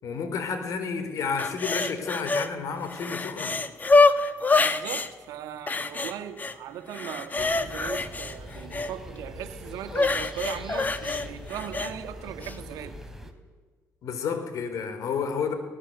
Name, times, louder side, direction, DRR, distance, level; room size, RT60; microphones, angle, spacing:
voice 1, 0.0-3.6 14.0-15.5, left 5 dB, 70° left, 4.1 m, -31 dB
sound 1, 1.4-2.5 2.8-5.1 5.7-6.6 6.9-8.9 9.9-11.9 12.4-12.6, left 3 dB, 30° left, 1.6 m, -25 dB
voice 2, 4.6-13.0, right 10 dB, 85° right, 1.5 m, -38 dB
sound 2, 7.4-13.3, equal, 5° right, 3.1 m, -42 dB
25.0 x 18.5 x 8.0 m
cardioid pair, 85°, 6 cm